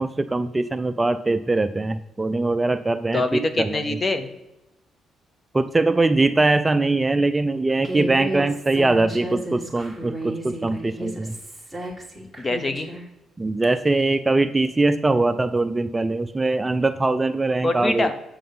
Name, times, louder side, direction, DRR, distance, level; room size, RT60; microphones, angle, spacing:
voice 1, 0.0-3.8 5.5-11.4 13.4-18.1, right 2 dB, 20° right, 10 dB, 0.4 m, -22 dB
voice 2, 3.1-4.3 12.4-12.9 17.6-18.1, left 2 dB, 30° left, 10 dB, 1.1 m, -24 dB
Human voice, 7.8-13.0, right 1 dB, ahead, 2.1 m, -33 dB
8.5 x 5.7 x 5.5 m, 0.93 s
cardioid pair, 90°, 0 cm